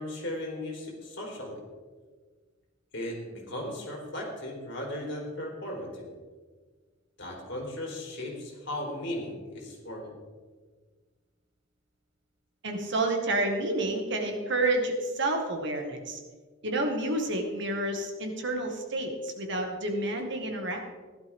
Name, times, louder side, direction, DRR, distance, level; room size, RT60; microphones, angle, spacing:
voice 1, 0.0-1.6 2.9-6.1 7.2-10.2, left 1 dB, 60° left, -1 dB, 3.6 m, -37 dB
voice 2, 12.6-16.2 16.6-20.8, right 2 dB, 60° right, 3 dB, 1.9 m, -29 dB
16.0 x 11.5 x 3.6 m, 1.4 s
head